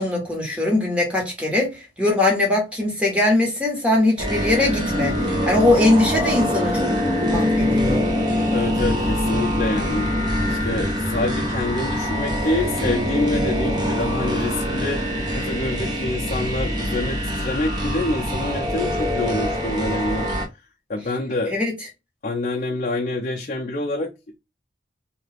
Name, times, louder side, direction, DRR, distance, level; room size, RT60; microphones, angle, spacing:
voice 1, 0.0-6.9 7.2-8.1 21.5-21.7, left 2 dB, 5° right, 1.1 m, -21 dB
sound 1, 4.2-20.5, equal, 25° right, 0.7 m, -24 dB
voice 2, 8.5-10.1 10.5-20.3 20.9-21.5 22.2-24.1, left 2 dB, 45° left, 0.4 m, -26 dB
2.8 x 2.4 x 3.3 m
head